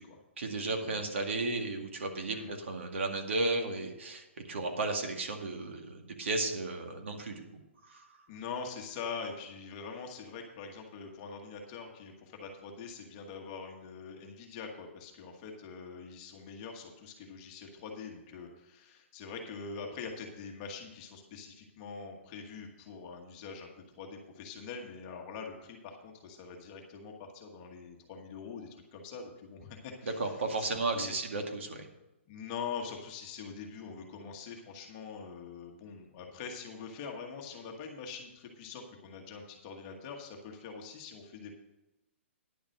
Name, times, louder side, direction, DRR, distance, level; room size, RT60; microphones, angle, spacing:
voice 1, 0.4-7.4 7.8-8.1 30.0-31.9, right 2 dB, 65° right, 3 dB, 2.1 m, -34 dB
voice 2, 8.3-30.4 30.7-31.2 32.3-41.5, left 5 dB, 20° left, 2 dB, 1.2 m, -44 dB
10.5 x 7.1 x 6.5 m, 0.98 s
hypercardioid pair, 175°, 7 cm